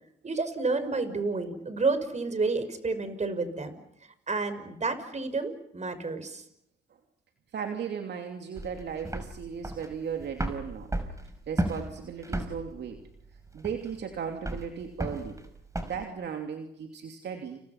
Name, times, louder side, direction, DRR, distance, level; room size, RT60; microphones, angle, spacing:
voice 1, 0.2-3.7 4.3-6.4, right 3 dB, 35° right, 11 dB, 6.0 m, -30 dB
voice 2, 7.5-10.9 11.5-13.0 13.5-15.4 15.8-17.6, right 7 dB, 65° right, 4 dB, 2.9 m, -36 dB
sound 1, 8.6-16.0, right 1 dB, 15° right, 5.2 m, -35 dB
30.0 x 29.5 x 5.9 m, 0.75 s
supercardioid pair, 55°, 19 cm